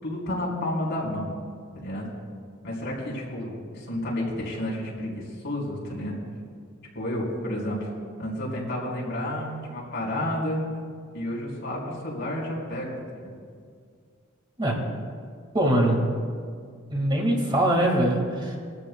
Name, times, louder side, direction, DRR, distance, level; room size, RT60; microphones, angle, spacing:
voice 1, 0.0-1.3 1.7-2.1 2.6-6.2 6.9-7.9 8.2-10.6 11.1-13.3, left 1 dB, 60° left, -5 dB, 4.0 m, -31 dB
voice 2, 14.6-15.0 15.5-16.2 16.9-18.6, right 1 dB, 25° right, -1 dB, 2.0 m, -23 dB
22.0 x 13.5 x 2.3 m, 2.1 s
head